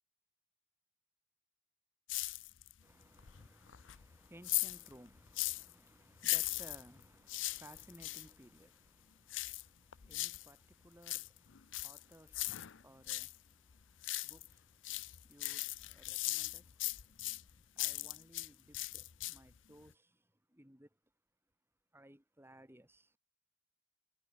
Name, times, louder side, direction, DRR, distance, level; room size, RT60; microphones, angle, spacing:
sound 1, 2.1-2.8 3.2-5.7 6.2-8.3 9.3-10.5 10.9-13.4 13.7-14.5 14.8-18.5 18.7-19.6 19.9-20.0, left 18 dB, 85° left, 0.6 m, -39 dB
voice 1, 2.8-20.9 21.9-23.2, right 1 dB, 15° right, 7.9 m, -61 dB
head